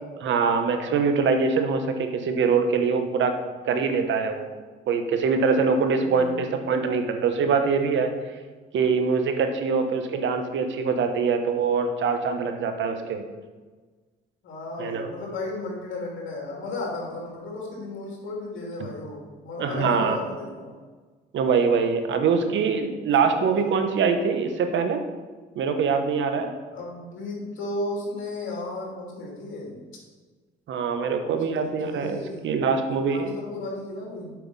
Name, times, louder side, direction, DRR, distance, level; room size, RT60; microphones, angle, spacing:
voice 1, 0.2-3.3 3.6-4.5 4.9-8.1 8.7-13.2 14.8-15.1 18.8-18.9 19.6-20.2 21.3-25.0 25.5-26.5 30.7-33.3, right 5 dB, 70° right, 7 dB, 1.1 m, -23 dB
voice 2, 6.0-6.6 14.4-20.8 22.4-22.7 23.1-23.7 26.7-29.8 31.2-34.3, left 2 dB, 75° left, -2 dB, 2.9 m, -35 dB
7.7 x 5.8 x 5.4 m, 1.4 s
cardioid pair, 90°, 20 cm